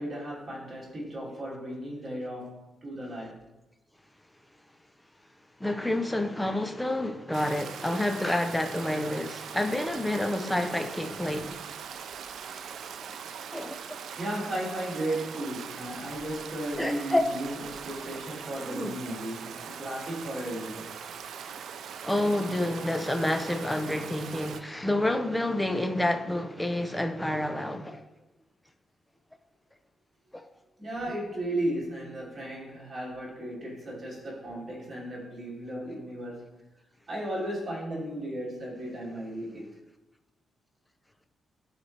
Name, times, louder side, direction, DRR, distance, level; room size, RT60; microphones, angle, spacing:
voice 1, 0.0-3.4 14.2-20.9 30.8-36.6 37.1-39.7, right 1 dB, 30° right, 2.2 m, -35 dB
voice 2, 5.6-11.6 13.5-13.8 16.8-17.4 18.7-18.9 22.0-28.1 30.3-30.5, left 1 dB, 5° left, 0.5 m, -29 dB
Stream, 7.3-24.6, right 7 dB, 70° right, 0.4 m, -41 dB
11.5 x 4.0 x 3.2 m
cardioid pair, 140°, 0 cm